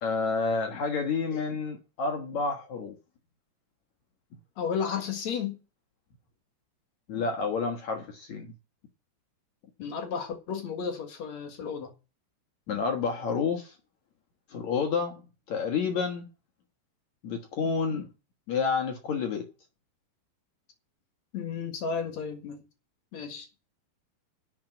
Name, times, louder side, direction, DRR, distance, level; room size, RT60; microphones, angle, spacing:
voice 1, 0.0-2.9 7.1-8.5 12.7-13.7 14.5-15.2 15.5-16.3 17.2-18.1 18.5-19.4, left 5 dB, 70° left, 1.7 m, -29 dB
voice 2, 4.6-5.5 9.8-11.9 21.3-22.6 23.1-23.5, left 6 dB, 55° left, 2.1 m, -33 dB
12.0 x 6.0 x 8.9 m
omnidirectional pair, 5.5 m